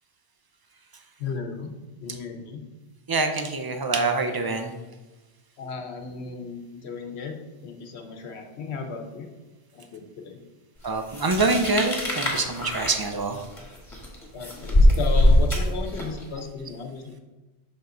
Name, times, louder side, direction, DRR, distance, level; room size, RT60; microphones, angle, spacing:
voice 1, 1.2-1.7 2.0-2.6 5.6-9.3 9.7-10.4 14.3-17.2, left 5 dB, 75° left, 5 dB, 1.1 m, -35 dB
voice 2, 3.1-4.7 10.8-13.4, right 3 dB, 30° right, 5 dB, 0.5 m, -25 dB
sound 1, 11.1-16.2, left 1 dB, 30° left, 1.6 m, -22 dB
6.2 x 5.5 x 3.8 m, 1.1 s
omnidirectional pair, 1.1 m